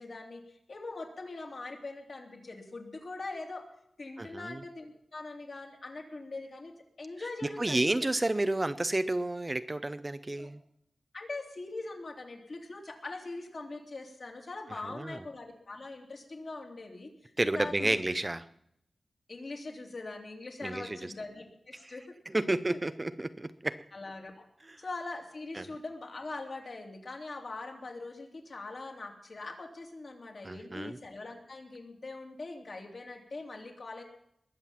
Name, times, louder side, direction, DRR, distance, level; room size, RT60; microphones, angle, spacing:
voice 1, 0.0-3.6 4.0-8.0 10.4-10.5 11.1-18.0 19.3-22.1 22.7-22.8 23.9-24.4 24.8-34.0, left 3 dB, 50° left, 2 dB, 2.9 m, -42 dB
voice 2, 4.2-4.6 7.4-10.6 14.8-15.2 17.4-18.4 20.6-21.1 21.8-22.0 22.3-23.8 24.6-24.8 25.5-25.7 30.4-31.0, right 2 dB, 20° right, 12 dB, 0.6 m, -31 dB
21.0 x 7.7 x 7.3 m, 0.74 s
wide cardioid pair, 130°, 0 cm